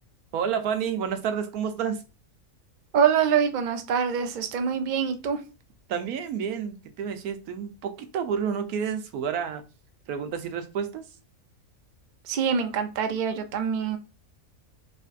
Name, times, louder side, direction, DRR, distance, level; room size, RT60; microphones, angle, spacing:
voice 1, 0.3-2.0 5.9-9.6 10.1-11.0, right 7 dB, 85° right, 8 dB, 1.2 m, -30 dB
voice 2, 2.9-5.4 12.3-14.0, right 7 dB, 65° right, 8 dB, 0.4 m, -25 dB
5.0 x 3.0 x 2.5 m, 0.31 s
omnidirectional pair, 1.5 m